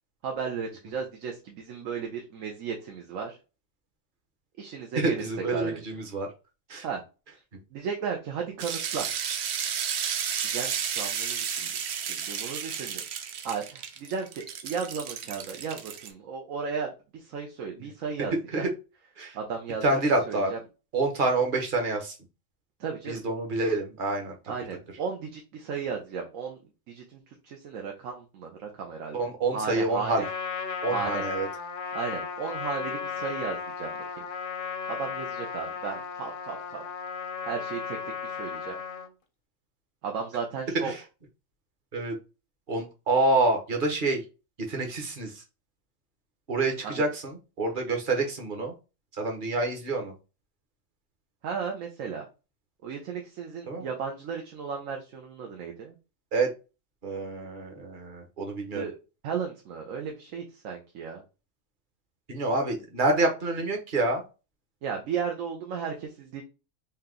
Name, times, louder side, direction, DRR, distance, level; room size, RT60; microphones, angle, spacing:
voice 1, 0.2-3.4 4.6-5.9 6.8-7.0 7.3-7.4 7.7-9.1 10.4-11.7 12.0-13.0 13.4-18.6 19.3-20.0 20.3-20.6 22.8-23.2 24.5-26.6 26.9-29.2 29.5-30.3 30.9-31.2 31.9-34.2 34.9-36.8 37.4-38.0 38.2-38.8 40.0-40.9 46.8-47.0 51.4-52.2 52.8-55.9 58.7-59.0 59.2-61.2 64.8-66.4, right 6 dB, 90° right, 2 dB, 1.1 m, -35 dB
voice 2, 5.0-6.3 6.7-6.8 18.5-18.7 19.2-19.4 19.8-20.5 20.9-22.2 23.1-24.4 29.1-30.2 30.8-31.5 40.8-41.0 41.9-42.2 42.7-44.2 44.7-45.4 46.5-48.7 49.2-50.1 53.7-53.9 56.3-56.5 57.0-58.8 62.3-64.2, right 2 dB, 45° right, 3 dB, 1.0 m, -27 dB
sound 1, 8.6-16.1, right 8 dB, 65° right, 0.8 m, -32 dB
Trumpet, 30.1-39.1, left 6 dB, 55° left, 0.7 m, -35 dB
3.4 x 2.8 x 3.7 m, 0.31 s
omnidirectional pair, 1.3 m